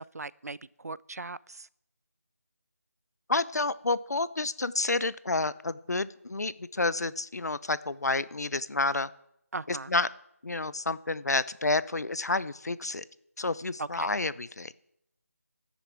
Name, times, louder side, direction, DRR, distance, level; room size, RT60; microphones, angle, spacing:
voice 1, 0.0-1.7 9.5-9.9 13.8-14.2, right 3 dB, 75° right, 0.5 m, -39 dB
voice 2, 3.3-9.1 9.7-10.1 10.4-13.0 13.4-14.7, left 3 dB, 80° left, 0.7 m, -29 dB
13.5 x 10.0 x 6.0 m
figure-of-eight pair, 175°, 9 cm